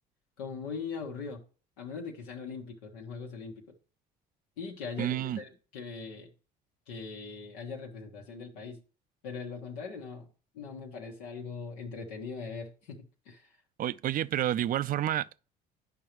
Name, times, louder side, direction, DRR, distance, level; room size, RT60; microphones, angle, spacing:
voice 1, 0.4-1.4 1.8-3.7 4.6-6.3 6.9-8.8 9.2-10.3 10.5-13.5, left 5 dB, 85° left, 1.3 m, -40 dB
voice 2, 5.0-5.4 13.8-15.4, right 12 dB, 45° right, 0.4 m, -29 dB
9.2 x 5.4 x 3.0 m
hypercardioid pair, 65°, 20 cm